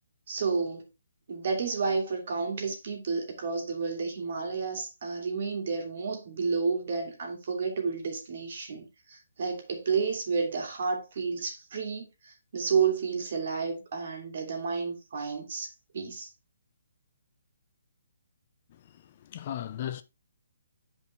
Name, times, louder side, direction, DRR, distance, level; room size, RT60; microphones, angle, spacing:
voice 1, 0.3-0.9 1.3-16.3, right 5 dB, 50° right, 2.8 m, -31 dB
voice 2, 18.7-20.0, left 11 dB, 35° left, 0.5 m, -37 dB
9.4 x 5.1 x 3.4 m
hypercardioid pair, 165°, 0 cm